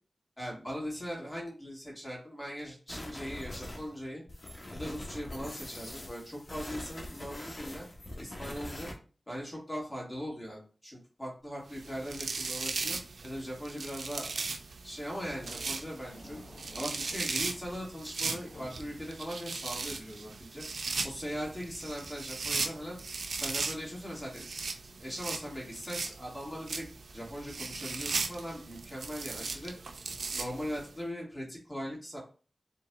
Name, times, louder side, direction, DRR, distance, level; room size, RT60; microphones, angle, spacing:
voice 1, 0.4-4.2 4.7-7.8 8.1-8.9 9.3-14.4 14.8-16.4 16.7-20.6 21.0-23.0 23.4-24.5 24.8-26.9 27.1-29.7 30.3-32.2, equal, 20° left, -3 dB, 2.4 m, -40 dB
sound 1, 2.9-4.0 4.3-8.9, left 1 dB, 40° left, 1.3 m, -43 dB
sound 2, 11.7-30.9, right 4 dB, 90° right, 0.6 m, -38 dB
sound 3, 15.3-19.3, left 2 dB, 65° left, 0.8 m, -53 dB
5.5 x 3.8 x 2.5 m, 0.38 s
wide cardioid pair, 65°, 0 cm